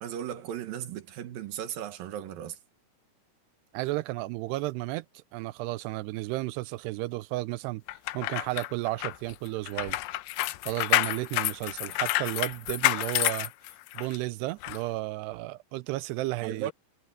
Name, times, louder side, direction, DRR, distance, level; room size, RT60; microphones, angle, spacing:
voice 1, 0.0-2.6 16.4-16.7, right 10 dB, 65° right, 3.0 m, -36 dB
voice 2, 3.7-7.8 8.1-10.0 10.7-13.5 13.9-16.7, right 19 dB, 85° right, 2.7 m, -33 dB
sound 1, 7.9-14.2 14.6-14.8, left 18 dB, 85° left, 2.9 m, -29 dB
omnidirectional pair, 4.7 m